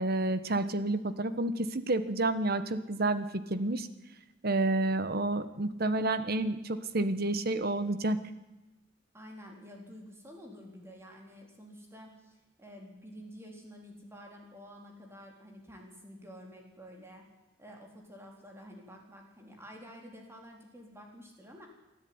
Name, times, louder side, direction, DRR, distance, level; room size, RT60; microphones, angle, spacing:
voice 1, 0.0-3.9 4.4-8.2, right 2 dB, 50° right, 12 dB, 1.3 m, -30 dB
voice 2, 9.1-17.2 17.6-21.7, equal, 15° right, 1 dB, 4.0 m, -50 dB
24.0 x 13.5 x 9.7 m, 1.1 s
head